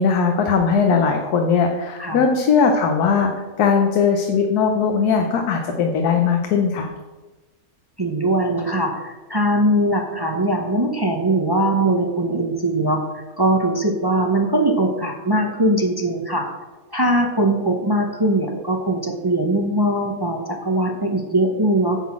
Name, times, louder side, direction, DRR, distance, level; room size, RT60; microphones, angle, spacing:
voice 1, 0.0-3.3 3.6-6.9, left 5 dB, 85° left, 3 dB, 1.3 m, -19 dB
voice 2, 8.0-16.5 16.9-22.0, right 1 dB, 30° right, 3 dB, 0.4 m, -21 dB
9.9 x 3.9 x 7.2 m, 1.2 s
omnidirectional pair, 1.6 m